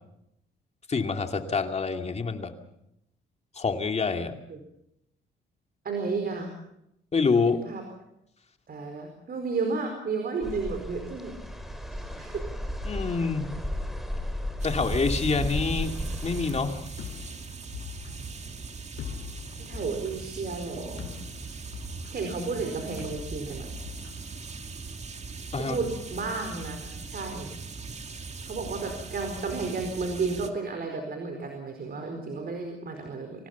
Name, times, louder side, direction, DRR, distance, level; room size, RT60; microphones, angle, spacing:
voice 1, 0.9-2.5 3.5-4.3 7.1-7.6 12.8-13.5 14.6-15.9 16.2-16.8 25.5-25.8, left 4 dB, 35° left, 5 dB, 2.5 m, -26 dB
voice 2, 5.8-6.5 7.7-7.8 8.7-11.3 11.9-12.4 19.6-21.1 22.1-23.7 25.6-27.5 28.4-33.5, right 4 dB, 50° right, 4 dB, 4.6 m, -32 dB
sound 1, 10.4-16.6, left 1 dB, ahead, 3.9 m, -34 dB
sound 2, 14.6-30.5, right 4 dB, 35° right, 2.2 m, -39 dB
sound 3, 17.0-24.9, left 8 dB, 70° left, 4.4 m, -43 dB
25.0 x 17.5 x 7.3 m, 0.82 s
cardioid pair, 90°, 20 cm